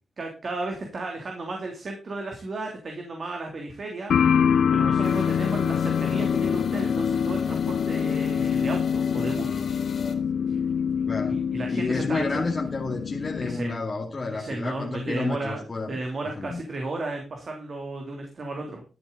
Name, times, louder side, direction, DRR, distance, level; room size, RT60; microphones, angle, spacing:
voice 1, 0.2-4.1 4.7-9.6 10.5-10.6 11.3-12.4 13.4-13.8 14.3-18.8, right 2 dB, 50° right, 2 dB, 3.0 m, -34 dB
sound 1, 4.1-13.6, left 7 dB, 80° left, 0.6 m, -25 dB
sound 2, 5.0-10.1, left 5 dB, 65° left, 3.4 m, -38 dB
voice 2, 11.0-11.4 11.7-16.0 16.4-16.6, left 3 dB, 35° left, -2 dB, 2.3 m, -30 dB
12.5 x 9.0 x 4.0 m, 0.33 s
wide cardioid pair, 105°, 0 cm